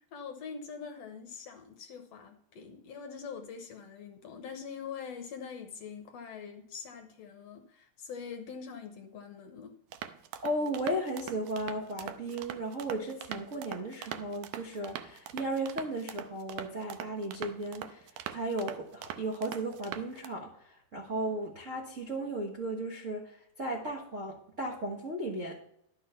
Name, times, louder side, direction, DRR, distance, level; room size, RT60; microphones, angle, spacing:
voice 1, 0.1-9.8, left 6 dB, 65° left, 5 dB, 1.8 m, -44 dB
sound 1, 9.9-20.3, right 10 dB, 85° right, 2.2 m, -43 dB
voice 2, 10.4-25.5, right 1 dB, 50° right, 0 dB, 0.8 m, -35 dB
11.5 x 6.3 x 5.7 m, 0.72 s
omnidirectional pair, 3.7 m